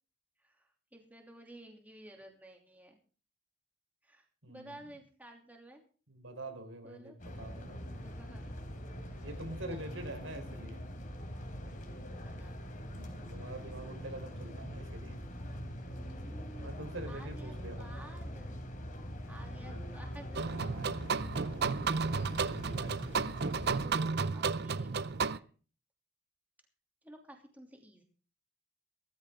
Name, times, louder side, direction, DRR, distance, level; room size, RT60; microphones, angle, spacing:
voice 1, 0.4-3.0 4.0-5.8 6.8-7.2 8.0-8.6 9.1-9.3 9.7-10.0 12.2-12.7 16.0-16.7 17.1-18.6 18.9-20.6 23.0-23.2 23.8-25.5 27.0-28.0, right 1 dB, 10° right, 1 dB, 2.9 m, -53 dB
voice 2, 4.4-4.8 6.1-8.0 9.2-10.9 12.9-15.2 16.6-17.9 19.3-19.8 20.4-21.7 22.1-23.0, right 1 dB, 80° right, 6 dB, 4.2 m, -46 dB
sound 1, 7.2-23.9, equal, 40° left, 3.5 m, -43 dB
sound 2, 20.4-25.4, right 5 dB, 55° right, 0.6 m, -33 dB
17.5 x 14.0 x 3.8 m, 0.39 s
head